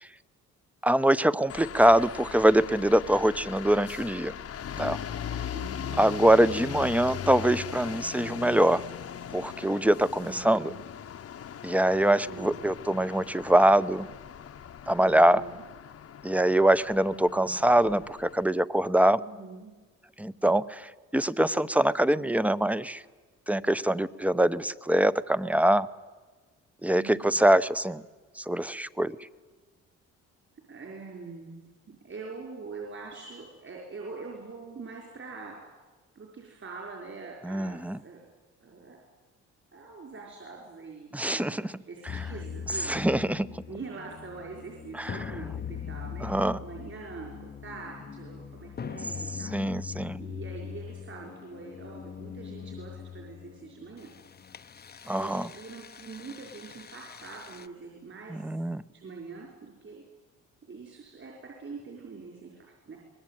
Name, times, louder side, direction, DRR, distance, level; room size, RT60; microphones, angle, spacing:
voice 1, 0.8-4.3 4.8-5.0 6.0-8.8 9.3-10.7 11.6-14.1 14.9-15.4 16.2-19.2 20.2-23.0 23.5-25.9 26.8-28.0 28.4-29.2 37.4-38.0 41.1-41.8 42.9-43.5 45.0-45.3 46.2-46.6 49.5-50.2 55.1-55.5 58.3-58.8, right 1 dB, 5° right, 15 dB, 0.8 m, -24 dB
sound 1, 1.5-18.4, left 9 dB, 50° left, 1.0 m, -39 dB
voice 2, 5.5-6.2 10.3-10.8 12.2-12.6 15.0-15.6 17.1-17.6 19.2-19.7 26.9-27.5 30.7-35.6 36.2-38.3 38.6-39.0 39.7-43.2 43.7-46.3 46.6-49.5 50.2-54.1 55.1-58.5 58.9-60.0 60.7-63.0, right 4 dB, 45° right, 0 dB, 5.3 m, -44 dB
sound 2, 42.1-57.7, left 8 dB, 30° left, 0.8 m, -41 dB
23.5 x 20.0 x 9.3 m, 1.3 s
cardioid pair, 90°, 30 cm